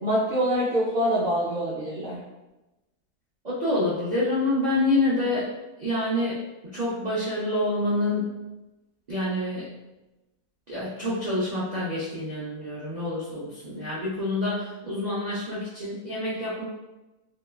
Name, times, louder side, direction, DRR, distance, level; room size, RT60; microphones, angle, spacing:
voice 1, 0.0-2.2, equal, 50° right, -9 dB, 0.7 m, -25 dB
voice 2, 3.4-5.5 5.8-8.3 9.1-9.7 10.7-16.6, left 1 dB, 85° right, -9 dB, 0.3 m, -27 dB
2.8 x 2.2 x 2.2 m, 1.0 s
omnidirectional pair, 1.6 m